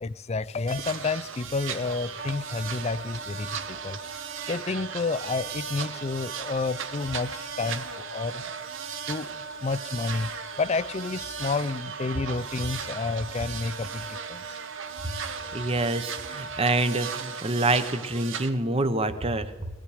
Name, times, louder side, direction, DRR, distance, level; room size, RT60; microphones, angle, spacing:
voice 1, 0.0-4.0 4.5-8.4 9.1-9.3 9.6-10.3 10.6-14.4, left 3 dB, 30° left, 0.4 m, -30 dB
sound 1, 0.7-18.5, right 7 dB, 65° right, 1.1 m, -38 dB
Wind instrument woodwind instrument, 2.2-17.4, right 3 dB, 45° right, 1.5 m, -41 dB
voice 2, 15.5-19.7, right 2 dB, 30° right, 1.0 m, -26 dB
18.5 x 15.5 x 5.0 m
head